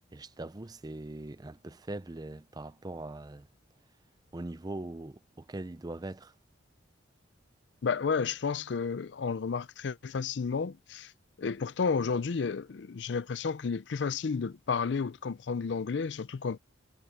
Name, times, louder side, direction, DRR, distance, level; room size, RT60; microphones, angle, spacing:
voice 1, 0.1-3.5 4.3-6.3, right 2 dB, 20° right, 0.5 m, -41 dB
voice 2, 7.8-11.1 11.4-16.6, left 5 dB, 60° left, 0.4 m, -32 dB
head